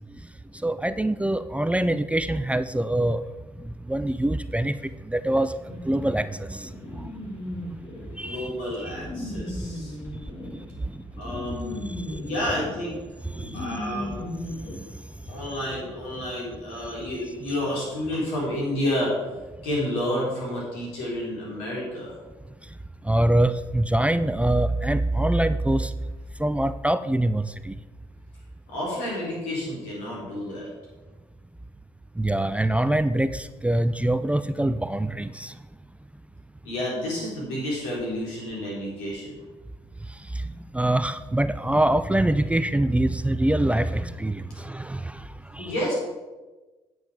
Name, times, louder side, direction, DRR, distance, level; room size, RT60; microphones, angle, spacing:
voice 1, 0.6-3.2 3.9-4.8 5.1-5.5 5.8-6.7 8.2-8.5 8.9-9.0 10.5-10.6 13.4-13.5 23.1-25.9 26.4-27.8 32.2-35.5 40.7-45.2 45.5-45.7, right 1 dB, 10° right, 13 dB, 0.4 m, -24 dB
sound 1, 5.7-14.8, left 1 dB, 40° left, 3.1 m, -37 dB
voice 2, 8.0-10.0 11.2-13.0 13.5-14.2 15.3-19.1 19.6-22.2 28.7-30.7 36.6-39.3 45.6-45.9, left 1 dB, 80° left, -4 dB, 3.6 m, -30 dB
9.1 x 7.7 x 4.9 m, 1.2 s
hypercardioid pair, 50°, 13 cm